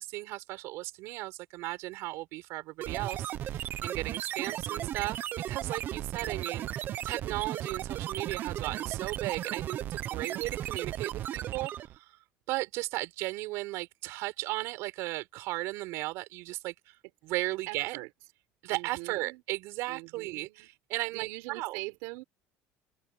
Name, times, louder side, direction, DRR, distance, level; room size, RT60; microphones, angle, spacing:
voice 1, 0.0-6.7 7.0-12.2 12.5-17.0 17.2-18.0 18.6-21.8, right 19 dB, 65° right, 5.7 m, -36 dB
sound 1, 2.8-12.0, right 11 dB, 40° right, 0.9 m, -35 dB
voice 2, 4.4-4.9 6.2-6.5 10.3-10.4 17.7-18.1 18.7-19.4 19.9-20.7 21.1-22.2, right 24 dB, 85° right, 4.7 m, -43 dB
open air
cardioid pair, 160°, 5 cm